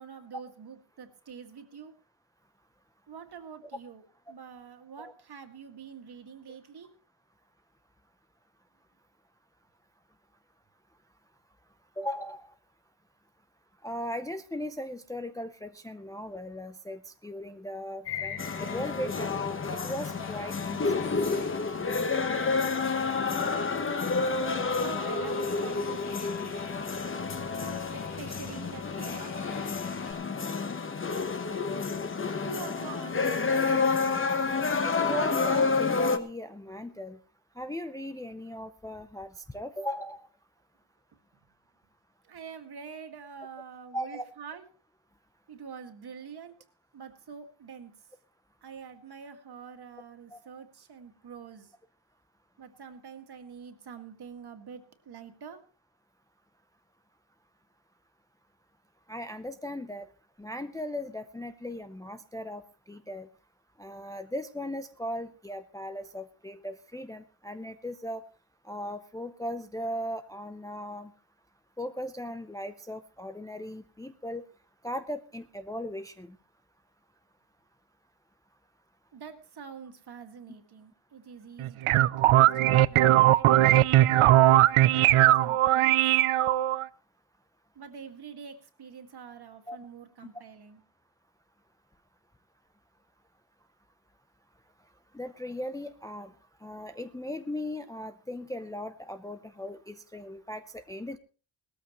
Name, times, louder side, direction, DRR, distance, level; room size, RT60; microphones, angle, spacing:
voice 1, 0.0-1.9 3.1-6.9 20.7-20.8 24.6-26.6 27.9-29.4 32.4-33.5 42.2-44.6 45.5-46.6 46.9-48.1 48.6-51.7 52.6-55.6 79.1-83.7 84.4-86.0 87.8-90.8, right 6 dB, 50° right, 6 dB, 2.0 m, -46 dB
voice 2, 12.0-12.5 13.8-19.4 19.7-21.1 34.8-37.2 37.6-40.2 43.9-44.2 50.3-50.4 59.1-60.1 60.4-62.6 62.9-63.3 63.8-68.2 68.6-71.1 71.8-74.4 74.8-76.4 89.7-89.8 95.1-96.3 96.6-101.2, equal, 5° left, 8 dB, 0.6 m, -38 dB
sound 1, 18.0-30.1, left 7 dB, 55° left, 4.0 m, -44 dB
sound 2, 18.4-36.2, left 4 dB, 25° left, 1.1 m, -29 dB
sound 3, 81.6-86.9, right 14 dB, 85° right, 0.6 m, -20 dB
19.0 x 13.5 x 3.0 m, 0.36 s
wide cardioid pair, 150°, 49 cm